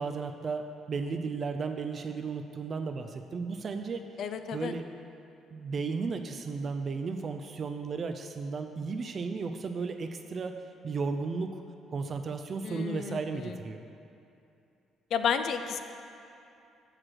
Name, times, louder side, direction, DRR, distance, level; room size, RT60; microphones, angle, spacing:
voice 1, 0.0-4.0 4.5-4.8 5.5-11.6 11.9-13.8, right 4 dB, 45° right, 6 dB, 0.4 m, -34 dB
voice 2, 4.2-4.7 12.6-13.5 15.1-15.8, left 7 dB, 65° left, 9 dB, 0.4 m, -32 dB
5.8 x 4.9 x 6.3 m, 2.7 s
cardioid pair, 85°, 0 cm